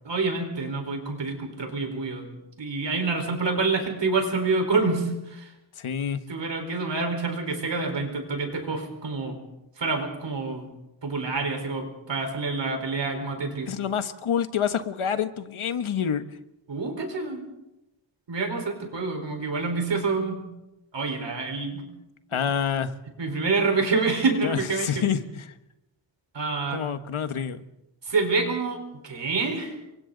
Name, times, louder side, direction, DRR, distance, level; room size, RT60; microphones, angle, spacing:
voice 1, 0.1-2.2 2.6-5.5 6.3-9.3 9.8-10.7 11.0-13.7 16.7-17.4 18.3-20.4 20.9-21.9 22.3-22.4 23.2-25.0 26.3-26.8 28.0-29.8, right 3 dB, 60° right, 4 dB, 4.5 m, -27 dB
voice 2, 5.8-6.2 13.7-16.2 22.3-22.9 24.4-25.5 26.7-27.6, left 8 dB, 90° left, 10 dB, 1.3 m, -27 dB
28.5 x 24.0 x 4.0 m, 0.93 s
wide cardioid pair, 165°, 48 cm